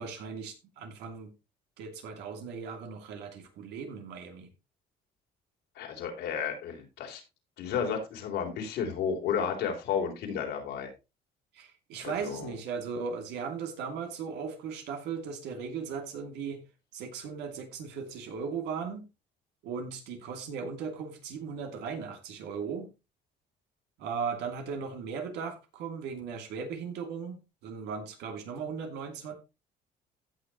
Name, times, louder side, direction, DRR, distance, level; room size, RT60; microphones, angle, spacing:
voice 1, 0.0-1.3 1.8-4.5 11.5-16.6 16.9-19.1 19.6-22.9 24.0-29.3, right 6 dB, 85° right, 2.7 m, -37 dB
voice 2, 5.8-7.2 7.6-10.9 12.0-12.5, left 7 dB, 85° left, 3.7 m, -32 dB
16.0 x 6.5 x 3.1 m
cardioid pair, 110°, 17 cm